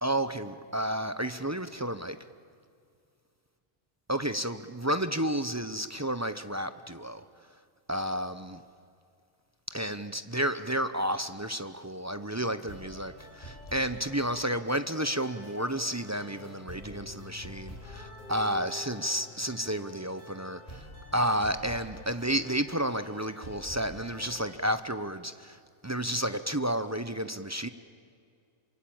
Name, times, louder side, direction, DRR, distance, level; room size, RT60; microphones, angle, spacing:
voice 1, 0.0-2.2 4.1-7.3 7.9-8.6 9.7-27.7, right 1 dB, 20° right, 10 dB, 0.5 m, -31 dB
sound 1, 12.6-24.7, left 1 dB, 25° left, 8.0 m, -48 dB
Female singing, 15.3-17.5 17.8-19.9, equal, 90° left, 5.5 m, -51 dB
27.0 x 24.5 x 8.9 m, 2.3 s
omnidirectional pair, 1.6 m